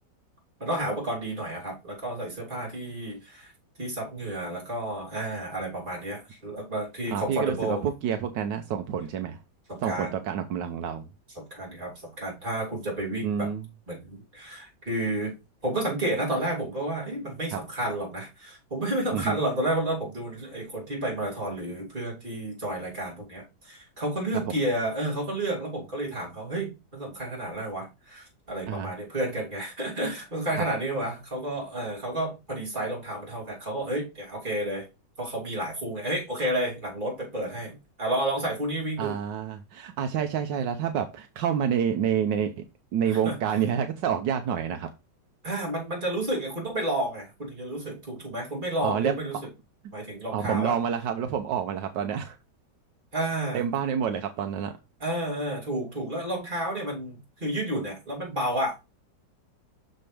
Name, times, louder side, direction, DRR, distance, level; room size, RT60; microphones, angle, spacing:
voice 1, 0.6-3.5 3.8-7.8 9.7-10.1 11.3-13.5 13.9-15.3 15.6-34.9 35.2-39.2 43.0-43.4 45.4-49.4 49.9-50.7 53.1-53.6 55.0-58.8, right 1 dB, 25° right, -3 dB, 3.3 m, -31 dB
voice 2, 7.1-9.4 9.8-11.1 13.2-13.6 17.5-17.6 19.1-19.4 28.7-28.9 30.6-30.7 39.0-42.6 42.9-44.9 48.8-49.1 50.3-52.4 53.5-54.7, right 8 dB, 75° right, 7 dB, 1.4 m, -28 dB
6.5 x 6.5 x 3.3 m, 0.26 s
omnidirectional pair, 2.0 m